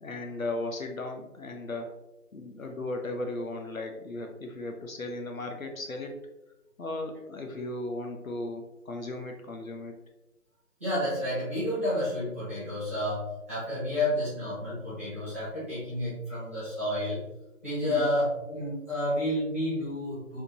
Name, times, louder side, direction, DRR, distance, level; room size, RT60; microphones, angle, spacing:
voice 1, 0.0-1.9 2.3-6.2 6.8-9.9 17.8-18.1, left 2 dB, 60° left, 3 dB, 0.8 m, -36 dB
voice 2, 10.8-17.2 17.6-20.4, left 1 dB, 10° right, -16 dB, 1.0 m, -30 dB
4.6 x 3.7 x 2.8 m, 0.97 s
figure-of-eight pair, 160°, 47 cm